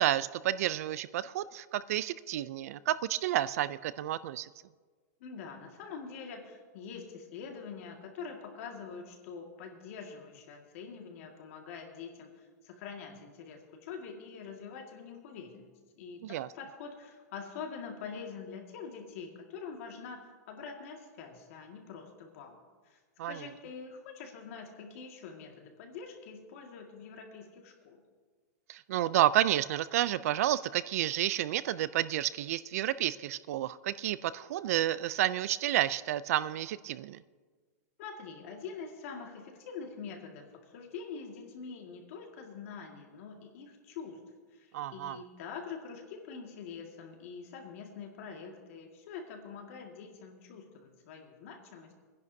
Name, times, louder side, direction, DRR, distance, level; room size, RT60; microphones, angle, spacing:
voice 1, 0.0-4.5 16.2-16.5 23.2-23.5 28.7-37.2 44.7-45.2, right 13 dB, 65° right, 18 dB, 0.4 m, -30 dB
voice 2, 5.2-22.6 22.8-23.0 23.3-28.0 38.0-44.2 44.5-51.9, left 5 dB, 55° left, 3 dB, 1.9 m, -45 dB
25.0 x 10.5 x 2.7 m, 1.5 s
supercardioid pair, 155°, 9 cm